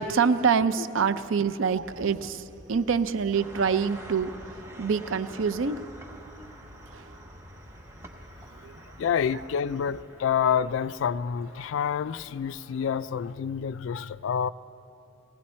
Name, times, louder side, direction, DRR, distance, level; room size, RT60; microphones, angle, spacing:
voice 1, 0.0-4.4 4.8-5.9 6.9-7.1 8.6-8.8 9.3-9.4, right 6 dB, 75° right, 11 dB, 0.5 m, -26 dB
sound 1, 1.7-10.0, equal, 55° right, 1.0 m, -50 dB
sound 2, 3.3-13.4, right 1 dB, 10° right, 0.8 m, -49 dB
voice 2, 9.0-14.5, left 7 dB, 70° left, 17 dB, 0.3 m, -28 dB
19.5 x 16.0 x 4.3 m, 2.9 s
head